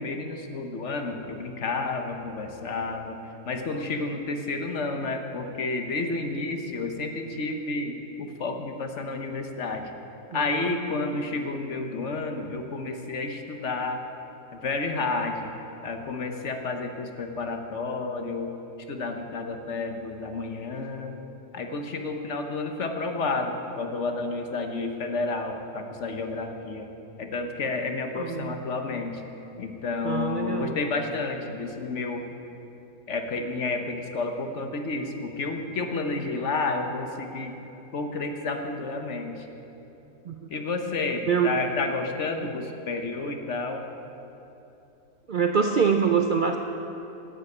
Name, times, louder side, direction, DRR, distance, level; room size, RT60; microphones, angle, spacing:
voice 1, 0.0-3.2 3.4-9.9 10.3-14.0 14.5-15.5 15.8-18.5 18.9-21.1 21.5-26.9 27.2-29.2 29.6-32.3 33.1-37.5 37.9-39.5 40.5-43.8, left 3 dB, 60° left, 5 dB, 1.3 m, -30 dB
voice 2, 10.3-10.7 28.2-28.6 30.0-30.8 40.3-40.4 41.3-41.6 45.3-46.6, right 6 dB, 55° right, 5 dB, 0.5 m, -25 dB
13.0 x 7.6 x 8.6 m, 3.0 s
omnidirectional pair, 1.4 m